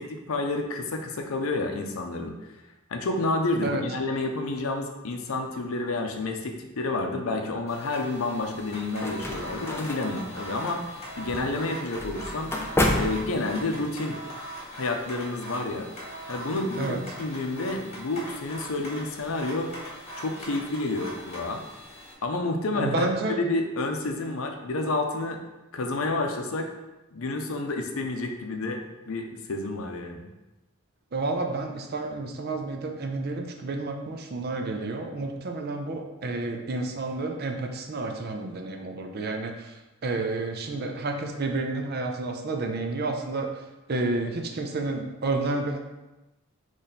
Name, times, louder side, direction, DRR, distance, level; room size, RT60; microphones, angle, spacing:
voice 1, 0.0-2.3 2.9-12.5 12.9-14.2 14.8-15.9 16.3-19.7 20.2-21.6 22.2-25.4 25.7-26.7 27.1-30.3, left 2 dB, 75° left, 4 dB, 0.6 m, -30 dB
sound 1, 7.7-22.1, right 1 dB, 30° left, 1.3 m, -41 dB
sound 2, 8.5-13.9, left 1 dB, 10° left, 0.4 m, -31 dB
voice 2, 22.7-23.4 31.1-43.6 43.9-45.8, right 2 dB, 45° right, 3 dB, 0.5 m, -30 dB
3.9 x 3.1 x 4.1 m, 1.0 s
head